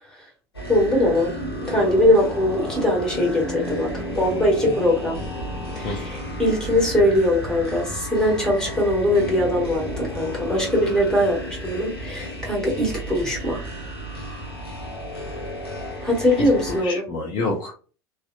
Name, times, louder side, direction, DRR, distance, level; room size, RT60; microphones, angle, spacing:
sound 1, 0.5-16.8, equal, 85° left, 0.8 m, -32 dB
voice 1, 0.7-1.3 1.7-5.2 5.7-13.7 16.0-17.1, left 1 dB, 5° left, -2 dB, 1.4 m, -21 dB
voice 2, 16.4-17.7, left 3 dB, 40° left, -1 dB, 0.6 m, -28 dB
2.6 x 2.0 x 2.5 m, 0.38 s
figure-of-eight pair, 70°, 13 cm